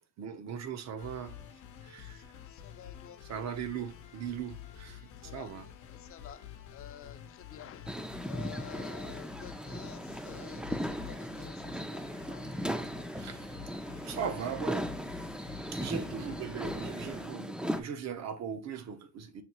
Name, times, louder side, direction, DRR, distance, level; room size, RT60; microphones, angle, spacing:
voice 1, 0.2-1.4 1.8-2.2 3.2-5.7 13.1-13.5 13.9-14.9 15.7-19.4, right 8 dB, 60° right, 0.7 m, -39 dB
sound 1, 1.0-17.3, left 10 dB, 85° left, 0.7 m, -49 dB
voice 2, 2.5-3.2 5.2-5.5 5.9-6.4 6.7-7.9 8.3-12.4, left 9 dB, 45° left, 0.6 m, -50 dB
sound 2, 7.9-17.8, equal, 5° right, 0.4 m, -38 dB
5.6 x 2.3 x 2.9 m
cardioid pair, 90°, 30 cm